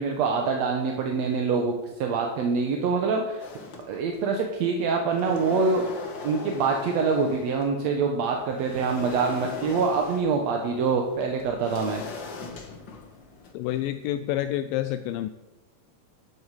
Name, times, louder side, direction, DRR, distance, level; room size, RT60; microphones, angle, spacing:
voice 1, 0.0-3.4 3.9-5.9 6.2-12.0, right 4 dB, 65° right, 2 dB, 1.9 m, -25 dB
sound 1, 3.4-4.4 4.8-7.8 8.2-13.8, left 4 dB, 50° left, 1.5 m, -40 dB
voice 2, 13.5-15.3, left 13 dB, 85° left, 10 dB, 2.2 m, -28 dB
12.0 x 11.0 x 4.8 m, 1.1 s
omnidirectional pair, 4.0 m